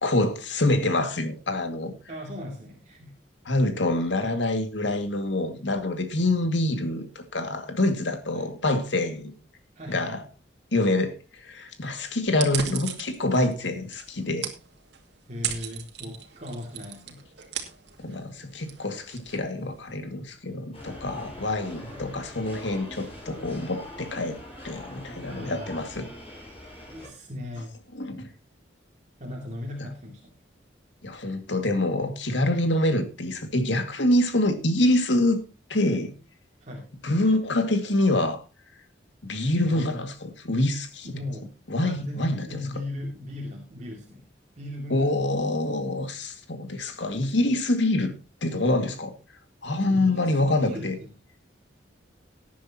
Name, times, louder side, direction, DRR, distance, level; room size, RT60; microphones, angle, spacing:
voice 1, 0.0-1.9 3.5-9.3 9.9-10.2 10.7-11.1 11.4-14.5 18.0-24.4 24.6-26.1 27.9-28.3 31.0-35.4 35.7-36.1 37.0-38.4 39.2-41.1 41.7-42.5 44.9-48.1 48.4-49.2 49.6-51.0, left 1 dB, 80° left, 2.2 m, -26 dB
voice 2, 2.1-3.1 8.3-8.5 9.8-10.2 15.3-17.2 21.9-22.1 25.3-25.9 26.9-27.7 29.2-30.4 36.6-36.9 39.6-39.9 41.0-41.5 41.8-44.2 44.6-45.1 49.9-51.1, left 1 dB, 40° right, 2.5 m, -37 dB
sound 1, 12.3-20.0, right 9 dB, 65° right, 2.4 m, -38 dB
sound 2, 20.7-27.1, left 1 dB, 35° left, 6.8 m, -42 dB
18.5 x 10.0 x 2.9 m
head